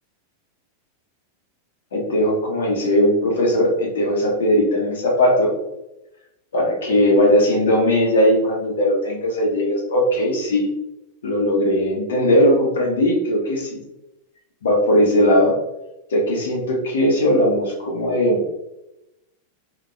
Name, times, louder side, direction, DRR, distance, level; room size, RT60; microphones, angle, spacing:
voice 1, 1.9-5.5 6.5-10.7 11.2-13.8 14.6-15.6 16.1-18.4, equal, 65° left, -1 dB, 1.5 m, -18 dB
5.2 x 3.8 x 2.5 m, 0.89 s
figure-of-eight pair, 90°, 0 cm